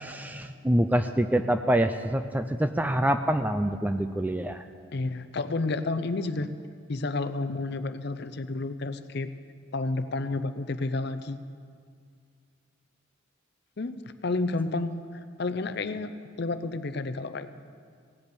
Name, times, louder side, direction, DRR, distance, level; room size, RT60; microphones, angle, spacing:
voice 1, 0.0-4.6, right 1 dB, 10° right, 8 dB, 0.3 m, -26 dB
voice 2, 4.9-6.5 6.9-9.3 9.7-11.4 13.8-17.5, left 3 dB, 50° left, 10 dB, 0.6 m, -31 dB
17.0 x 8.0 x 6.9 m, 2.1 s
head